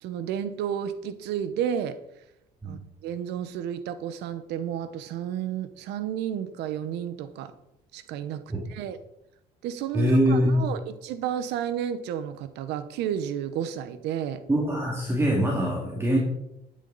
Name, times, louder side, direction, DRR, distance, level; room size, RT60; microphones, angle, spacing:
voice 1, 0.0-2.0 2.6-7.5 7.9-8.4 8.7-9.0 9.6-14.4, right 9 dB, 85° right, 12 dB, 1.1 m, -32 dB
voice 2, 9.9-10.6 14.5-16.2, equal, 15° right, -2 dB, 2.5 m, -23 dB
12.0 x 10.0 x 4.1 m, 0.84 s
cardioid pair, 110°, 17 cm